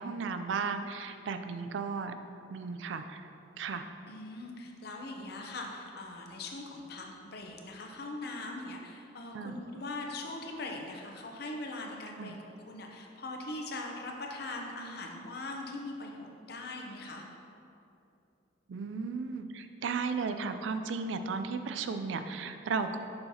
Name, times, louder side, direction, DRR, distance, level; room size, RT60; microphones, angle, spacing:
voice 1, 0.0-2.1 2.5-3.3 3.6-3.9 9.3-9.6 12.2-12.3 18.7-23.0, right 5 dB, 80° right, 8 dB, 0.4 m, -35 dB
voice 2, 4.1-17.2, left 2 dB, 55° left, 1 dB, 0.7 m, -41 dB
6.8 x 5.6 x 2.8 m, 2.7 s
head